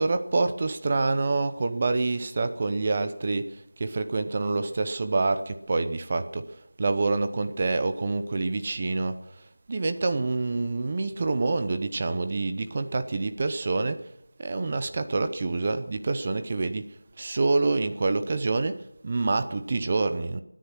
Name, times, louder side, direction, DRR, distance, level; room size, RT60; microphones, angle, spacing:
voice 1, 0.0-6.5 6.8-9.2 9.7-14.1 14.4-16.9 17.2-20.4, right 3 dB, 20° right, 0.7 m, -27 dB
23.0 x 10.0 x 6.1 m
figure-of-eight pair, 175°, 0 cm